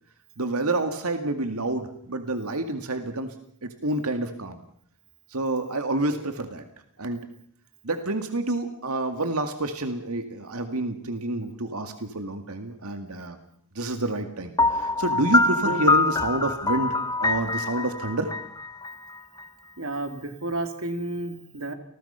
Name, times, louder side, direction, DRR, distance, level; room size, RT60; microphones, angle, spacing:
voice 1, 0.4-3.3 3.6-4.6 5.3-6.6 7.0-7.2 7.8-13.4 13.8-17.0 17.2-18.3, right 2 dB, 85° right, 7 dB, 2.1 m, -28 dB
Piano, 14.6-19.4, left 3 dB, 15° left, 1.0 m, -24 dB
voice 2, 19.8-21.7, right 2 dB, 65° right, 7 dB, 3.0 m, -31 dB
29.0 x 20.0 x 5.7 m, 0.66 s
head